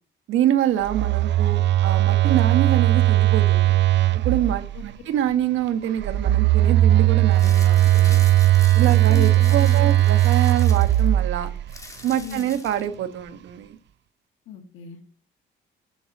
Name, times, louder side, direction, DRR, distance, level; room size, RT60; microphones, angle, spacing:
voice 1, 0.3-3.7 4.2-8.2 8.7-11.5 12.0-13.8, right 11 dB, 85° right, 9 dB, 1.3 m, -25 dB
Telephone, 0.8-4.9 6.0-11.7, right 14 dB, 65° right, 0.5 m, -18 dB
sound 1, 7.3-12.9, left 2 dB, 15° left, 2.1 m, -42 dB
voice 2, 9.1-9.9 12.2-12.5 14.5-15.1, left 7 dB, 80° left, 2 dB, 1.5 m, -37 dB
7.0 x 7.0 x 7.1 m, 0.43 s
cardioid pair, 90°, 20 cm